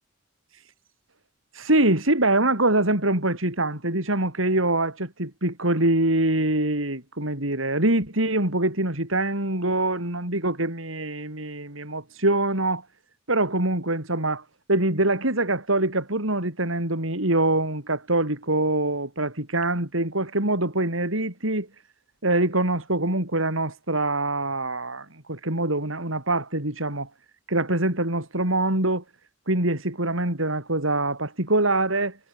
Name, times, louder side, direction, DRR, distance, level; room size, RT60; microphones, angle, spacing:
voice 1, 1.5-12.8 13.3-21.7 22.2-27.1 27.5-29.0 29.5-32.2, right 2 dB, 85° right, 5.8 m, -24 dB
head